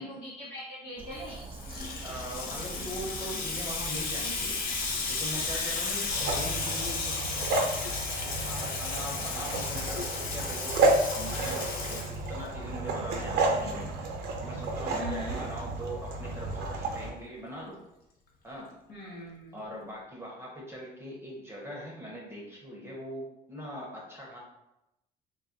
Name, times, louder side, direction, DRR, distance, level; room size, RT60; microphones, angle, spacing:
voice 1, 0.0-1.5 5.7-6.0 14.9-15.4 18.9-19.6, left 1 dB, 80° left, -7 dB, 0.9 m, -41 dB
sound 1, 1.0-6.3, right 3 dB, 30° right, 0.3 m, -44 dB
Water tap faucet / Sink (filling or washing), 1.2-12.7, left 4 dB, 60° left, 0.6 m, -34 dB
voice 2, 2.0-4.6 5.1-7.8 8.2-10.8 11.1-13.9 14.4-17.8 18.4-18.7 19.5-24.4, equal, 15° right, -4 dB, 0.7 m, -41 dB
sound 2, 6.1-17.1, right 2 dB, 75° right, 0.6 m, -31 dB
2.3 x 2.2 x 3.7 m, 0.89 s
cardioid pair, 110°, 17 cm